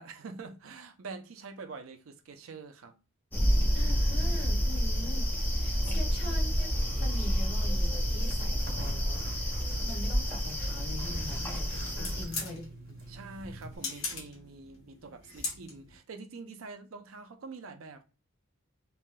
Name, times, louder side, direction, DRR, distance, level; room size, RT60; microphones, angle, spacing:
voice 1, 0.0-2.9 5.8-6.0 12.0-12.2 13.1-18.0, right 4 dB, 75° right, 0.5 m, -45 dB
sound 1, 3.3-12.2, equal, 10° left, 0.5 m, -29 dB
voice 2, 3.7-9.6 9.8-13.0, left 1 dB, 55° left, 1.4 m, -44 dB
Zipper (clothing), 6.5-13.8, right 1 dB, 45° right, 0.7 m, -44 dB
sound 2, 10.7-16.0, left 3 dB, 75° left, 1.1 m, -42 dB
3.3 x 2.6 x 2.2 m
head